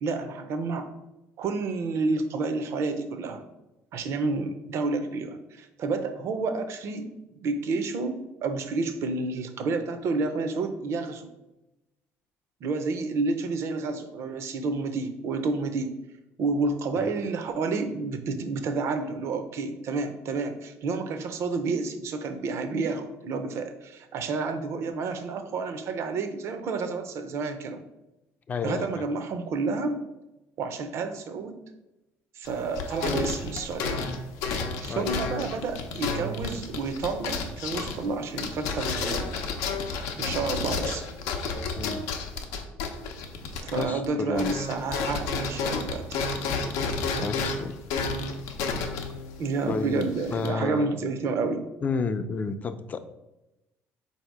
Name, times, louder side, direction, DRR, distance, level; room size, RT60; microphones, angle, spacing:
voice 1, 0.0-0.9 1.4-3.4 3.9-11.3 12.6-16.0 16.4-27.8 28.6-30.0 30.6-31.6 32.3-34.1 34.8-39.4 40.2-41.0 43.6-46.2 49.4-51.6, right 3 dB, 60° right, 8 dB, 0.5 m, -30 dB
voice 2, 28.5-29.0 34.9-35.1 41.7-42.0 43.7-44.6 47.2-47.7 49.7-50.9 51.8-53.0, left 4 dB, 30° left, 10 dB, 0.3 m, -31 dB
sound 1, 32.5-44.1 44.3-50.5, left 4 dB, 90° left, 0.6 m, -31 dB
4.2 x 2.7 x 4.6 m, 0.97 s
cardioid pair, 120°, 5 cm